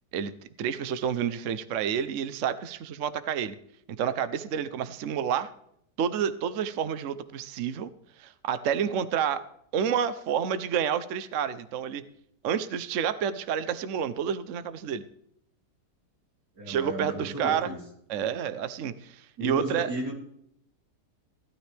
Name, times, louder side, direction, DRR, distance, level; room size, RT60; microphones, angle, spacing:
voice 1, 0.1-3.6 4.0-5.5 6.0-7.9 8.2-9.5 9.7-12.0 12.4-15.0 16.7-17.7 18.1-19.9, right 8 dB, 60° right, 13 dB, 0.9 m, -29 dB
voice 2, 16.5-17.8 19.4-20.1, right 1 dB, 90° right, -2 dB, 4.0 m, -34 dB
16.0 x 12.5 x 3.4 m, 0.71 s
omnidirectional pair, 1.8 m